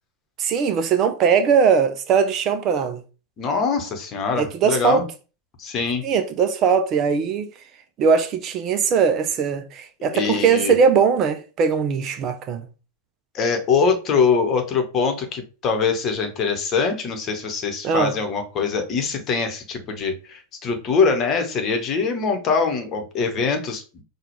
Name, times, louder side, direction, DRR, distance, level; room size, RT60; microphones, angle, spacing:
voice 1, 0.4-3.0 4.4-5.0 6.0-7.5 8.0-12.6 17.8-18.1, right 6 dB, 35° right, 0.4 m, -20 dB
voice 2, 3.4-5.1 5.6-6.0 10.0-10.8 13.3-23.8, left 5 dB, 30° left, 1.0 m, -23 dB
5.8 x 2.3 x 3.1 m
figure-of-eight pair, 90°, 0 cm